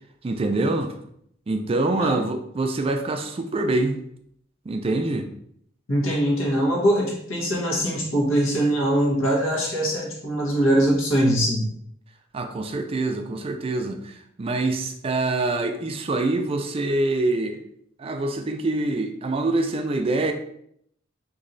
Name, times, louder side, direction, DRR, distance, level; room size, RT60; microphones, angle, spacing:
voice 1, 0.2-0.9 1.5-4.0 4.7-5.3 12.3-17.6 18.0-20.3, right 2 dB, 30° right, 6 dB, 0.3 m, -25 dB
voice 2, 5.9-11.6, equal, 85° left, -2 dB, 1.2 m, -22 dB
3.1 x 2.7 x 3.8 m, 0.71 s
head